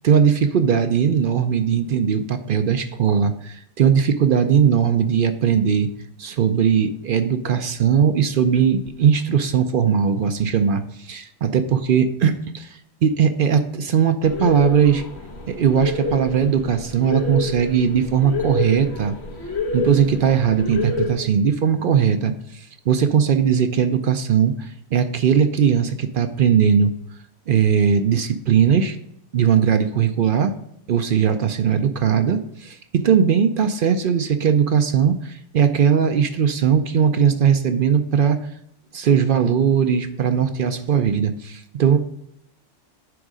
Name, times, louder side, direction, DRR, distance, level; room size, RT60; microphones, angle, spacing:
voice 1, 0.0-5.9 6.2-12.7 13.0-15.0 15.5-19.1 19.7-26.9 27.5-29.0 29.3-30.5 30.9-38.5 38.9-42.0, right 7 dB, 60° right, 8 dB, 0.6 m, -19 dB
sound 1, 14.2-21.1, left 3 dB, 65° left, 1.5 m, -28 dB
9.5 x 3.6 x 5.0 m, 0.75 s
omnidirectional pair, 1.2 m